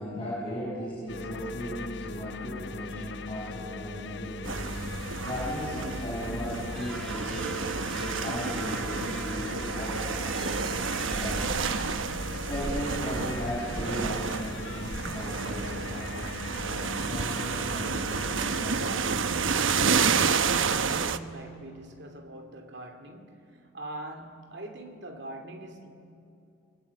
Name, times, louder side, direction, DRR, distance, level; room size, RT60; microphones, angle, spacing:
voice 1, 0.0-4.8 5.2-7.5 8.0-11.6 12.4-16.3 16.6-18.9, equal, 25° left, 7.5 m, -36 dB
sound 1, 1.1-18.9, left 3 dB, 60° left, 0.7 m, -40 dB
sound 2, 4.4-21.2, right 5 dB, 75° right, 1.0 m, -30 dB
sound 3, 6.8-12.1, equal, ahead, 1.0 m, -44 dB
voice 2, 18.7-25.9, right 1 dB, 60° right, 2.9 m, -43 dB
29.5 x 23.0 x 8.5 m
head